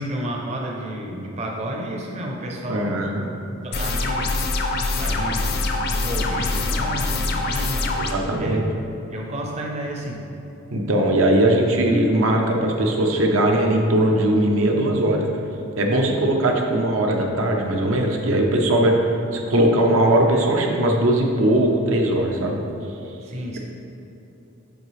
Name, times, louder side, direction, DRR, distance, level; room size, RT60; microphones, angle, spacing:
voice 1, 0.0-3.1 3.6-4.4 5.0-8.1 8.3-8.6 9.1-10.2 23.2-23.6, right 1 dB, 30° right, -1 dB, 0.6 m, -31 dB
voice 2, 2.7-3.3 8.0-8.7 10.7-15.2 15.8-22.6, right 1 dB, 75° right, 1 dB, 0.7 m, -20 dB
sound 1, 3.7-8.1, left 2 dB, 50° left, 0.5 m, -24 dB
7.1 x 4.8 x 3.2 m, 2.9 s
head